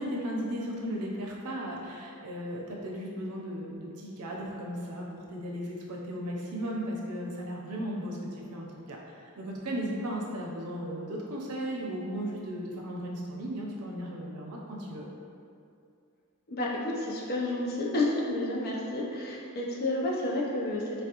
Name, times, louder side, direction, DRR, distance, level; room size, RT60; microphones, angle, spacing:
voice 1, 0.0-15.0, equal, 80° right, -2 dB, 0.5 m, -36 dB
voice 2, 16.5-21.0, left 2 dB, 45° left, -3 dB, 0.5 m, -30 dB
3.4 x 2.1 x 2.8 m, 2.4 s
head